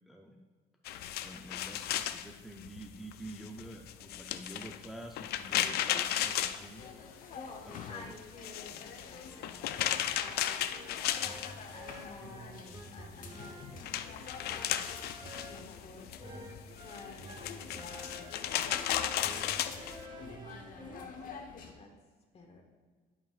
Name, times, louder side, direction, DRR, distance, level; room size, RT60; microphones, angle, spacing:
voice 1, 0.1-0.4 1.2-6.8 7.1-7.3 7.7-8.2, right 1 dB, ahead, 1 dB, 0.5 m, -48 dB
sound 1, 0.8-7.4 7.7-12.1 12.4-20.0, left 11 dB, 70° left, 0.4 m, -35 dB
sound 2, 6.8-21.7, left 5 dB, 55° left, 0.9 m, -49 dB
voice 2, 7.3-11.3 11.7-12.7 12.9-14.8 15.4-16.6 16.8-18.6 19.7-20.0 20.5-21.5 21.7-21.9 22.3-22.6, left 3 dB, 40° left, 2 dB, 1.4 m, -52 dB
sound 3, 10.0-21.0, right 1 dB, 25° right, 0.9 m, -50 dB
11.0 x 5.6 x 2.4 m, 1.5 s
cardioid pair, 110°, 17 cm